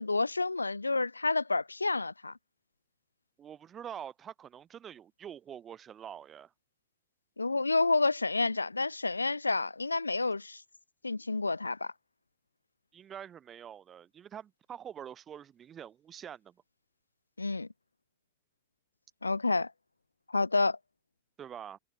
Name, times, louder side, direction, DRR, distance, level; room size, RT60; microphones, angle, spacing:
voice 1, 0.0-2.3 7.4-10.6 11.0-11.9 17.4-17.7 19.2-19.7 20.3-20.8, left 3 dB, 80° left, 0.6 m, -29 dB
voice 2, 3.4-6.5 12.9-16.5 21.4-21.8, right 9 dB, 25° right, 1.2 m, -45 dB
figure-of-eight pair, 90°, 0 cm